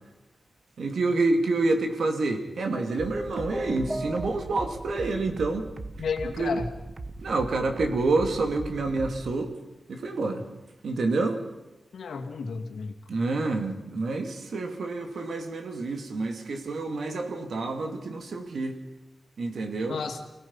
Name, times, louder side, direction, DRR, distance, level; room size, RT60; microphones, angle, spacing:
voice 1, 0.8-5.7 6.4-6.6 7.2-9.5 9.9-10.4 10.8-11.4 13.1-18.8 19.4-20.0, right 3 dB, 70° right, 4 dB, 2.9 m, -28 dB
sound 1, 2.7-4.8, right 1 dB, 5° right, 0.9 m, -35 dB
sound 2, 3.0-9.3, right 3 dB, 40° right, 1.3 m, -39 dB
voice 2, 6.0-6.7 11.9-12.9 19.9-20.2, left 5 dB, 90° left, 5 dB, 2.3 m, -32 dB
29.0 x 18.0 x 5.7 m, 1.0 s
wide cardioid pair, 125°, 0 cm